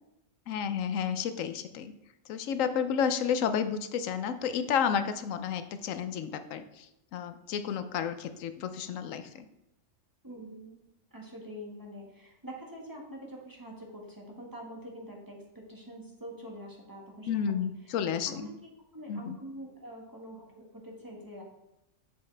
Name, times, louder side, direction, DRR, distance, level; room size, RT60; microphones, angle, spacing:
voice 1, 0.5-1.9 2.3-6.9 7.1-9.5 17.3-18.5 19.1-19.4, left 7 dB, 85° left, 10 dB, 1.0 m, -31 dB
voice 2, 10.2-10.8 11.1-17.9 18.3-18.5 18.9-21.4, equal, 15° right, -2 dB, 1.6 m, -45 dB
7.5 x 6.9 x 3.3 m, 0.88 s
omnidirectional pair, 1.3 m